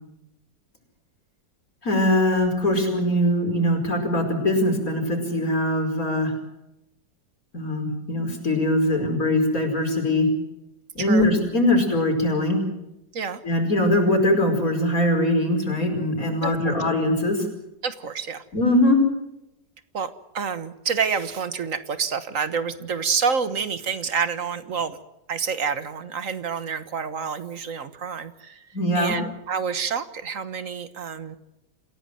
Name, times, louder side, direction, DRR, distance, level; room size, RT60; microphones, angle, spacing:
voice 1, 1.8-6.3 7.5-10.3 11.0-12.6 13.4-17.5 18.5-19.0 28.7-29.2, left 1 dB, 50° left, 4 dB, 5.5 m, -22 dB
voice 2, 16.4-16.8 17.8-18.4 19.9-25.0 25.3-28.6 28.9-31.4, right 6 dB, 50° right, 12 dB, 1.5 m, -28 dB
27.5 x 16.5 x 7.7 m, 0.89 s
omnidirectional pair, 1.9 m